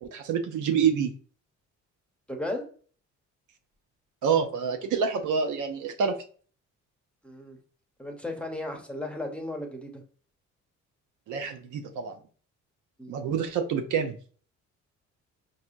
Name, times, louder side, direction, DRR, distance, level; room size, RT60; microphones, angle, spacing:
voice 1, 0.0-1.1 4.2-6.2 11.3-12.2 13.1-14.2, right 6 dB, 80° right, 6 dB, 0.7 m, -27 dB
voice 2, 2.3-2.7 7.2-7.6 8.0-10.0 13.0-13.1, left 1 dB, 5° left, 3 dB, 0.9 m, -35 dB
4.7 x 2.8 x 2.5 m, 0.43 s
cardioid pair, 90°, 30 cm